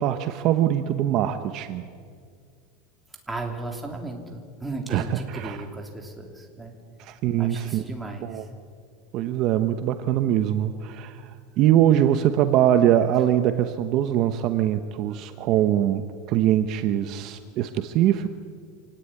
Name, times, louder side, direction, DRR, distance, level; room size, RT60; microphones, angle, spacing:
voice 1, 0.0-1.9 4.9-5.6 7.0-7.8 8.2-8.4 9.1-18.3, right 11 dB, 40° right, 9 dB, 1.0 m, -23 dB
voice 2, 3.3-6.7 7.4-8.4 15.1-15.2, right 2 dB, 5° right, 2 dB, 3.1 m, -35 dB
26.5 x 18.0 x 9.9 m, 2.2 s
supercardioid pair, 160°, 0 cm